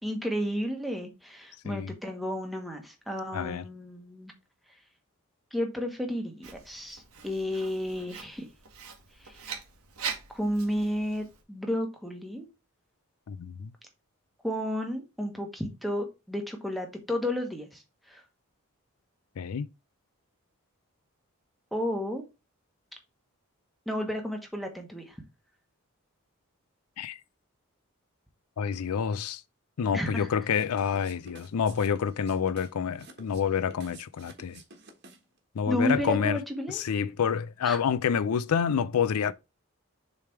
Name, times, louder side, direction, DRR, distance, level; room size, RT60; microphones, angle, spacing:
voice 1, 0.0-4.3 5.5-8.5 9.2-9.5 10.3-12.5 14.4-18.2 21.7-22.2 23.9-25.2 29.9-30.3 35.7-36.8 37.6-37.8, equal, ahead, 1.2 m, -32 dB
voice 2, 3.3-3.6 13.3-13.7 19.4-19.7 27.0-27.2 28.6-29.4 29.8-34.6 35.6-36.4 36.7-39.3, left 7 dB, 90° left, 0.4 m, -28 dB
Writing, 6.4-11.4, right 6 dB, 90° right, 1.6 m, -42 dB
sound 1, 30.5-35.4, right 3 dB, 50° right, 1.4 m, -51 dB
6.9 x 3.3 x 4.5 m
head